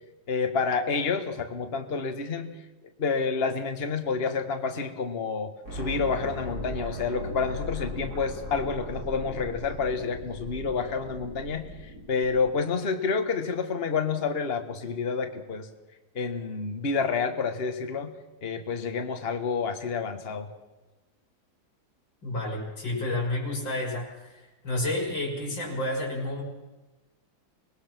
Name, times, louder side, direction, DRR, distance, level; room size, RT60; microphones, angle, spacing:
voice 1, 0.3-2.5 3.0-11.7 12.1-15.7 16.2-18.1 18.4-20.5, left 5 dB, 30° left, 6 dB, 1.6 m, -29 dB
sound 1, 5.6-12.5, left 1 dB, 50° right, 5.5 m, -38 dB
voice 2, 22.2-26.4, left 1 dB, 65° left, -3 dB, 6.7 m, -30 dB
25.5 x 19.5 x 6.1 m, 1.1 s
omnidirectional pair, 2.2 m